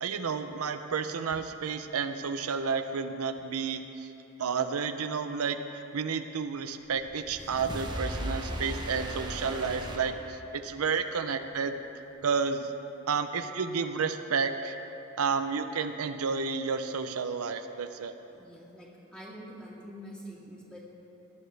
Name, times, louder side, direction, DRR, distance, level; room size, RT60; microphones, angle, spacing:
voice 1, 0.0-4.1 4.4-11.8 12.2-12.7 13.1-14.8 15.2-18.1, right 5 dB, 90° right, 8 dB, 0.6 m, -31 dB
sound 1, 7.0-10.8, right 1 dB, 20° right, 1.0 m, -37 dB
voice 2, 18.3-20.8, equal, 5° left, -6 dB, 2.1 m, -46 dB
18.5 x 11.0 x 3.4 m, 3.0 s
head